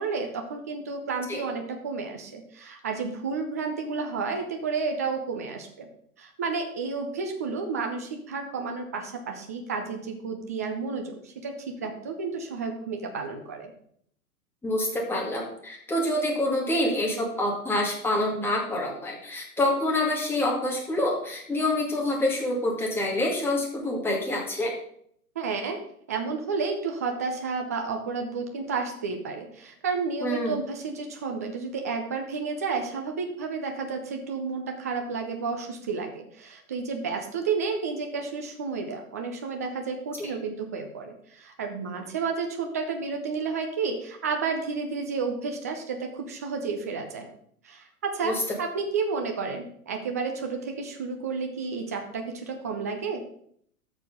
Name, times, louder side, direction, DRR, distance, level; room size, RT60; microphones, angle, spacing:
voice 1, 0.0-5.9 6.2-13.7 25.4-25.8 26.1-47.3 47.6-53.2, right 4 dB, 10° right, 3 dB, 0.4 m, -31 dB
voice 2, 14.6-24.7 30.2-30.6 40.2-40.3 48.2-48.4, left 1 dB, 5° left, -2 dB, 2.1 m, -27 dB
12.5 x 6.7 x 3.8 m, 0.65 s
figure-of-eight pair, 110°, 45 cm